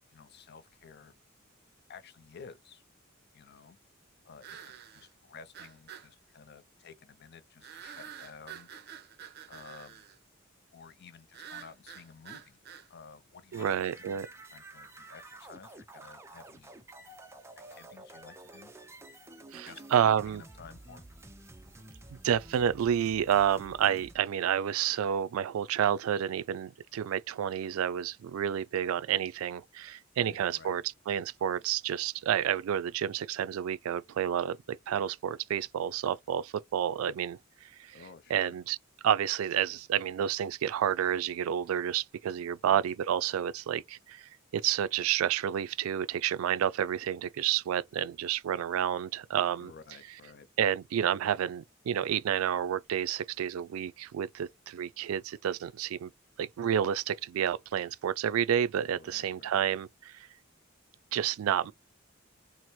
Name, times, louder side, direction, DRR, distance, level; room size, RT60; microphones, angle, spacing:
voice 1, 0.1-1.1 1.9-2.8 3.3-3.8 4.2-8.7 9.5-10.1 10.7-12.6 12.9-13.7 14.0-14.2 14.5-16.8 17.7-18.7 19.5-21.0 30.2-30.7 37.9-38.6 42.6-42.9 49.6-50.5 58.9-59.6, left 5 dB, 50° left, 0.5 m, -52 dB
sound 1, 0.8-0.9 4.4-5.1 5.5-6.1 7.6-10.2 11.3-12.9, right 9 dB, 50° right, 0.7 m, -48 dB
sound 2, 13.5-24.2, right 2 dB, 15° right, 0.4 m, -50 dB
voice 2, 13.5-14.3 19.5-20.4 22.1-37.4 37.8-38.0 38.3-38.8 39.0-49.7 50.6-56.1 56.4-60.3 61.1-61.7, right 9 dB, 85° right, 0.3 m, -30 dB
4.3 x 2.0 x 3.0 m
head